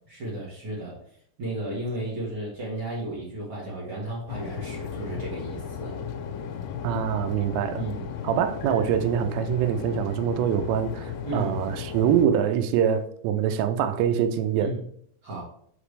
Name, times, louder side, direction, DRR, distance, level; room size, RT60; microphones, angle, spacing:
voice 1, 0.1-1.0 1.4-5.9 7.7-8.1 11.2-11.5 14.6-14.8 15.2-15.4, right 1 dB, 55° right, 1.5 m, -33 dB
sound 1, 4.3-12.3, left 7 dB, 80° left, 2.5 m, -35 dB
voice 2, 6.8-7.8 8.2-14.7, right 8 dB, 90° right, 2.8 m, -24 dB
5.8 x 5.1 x 3.3 m
omnidirectional pair, 4.9 m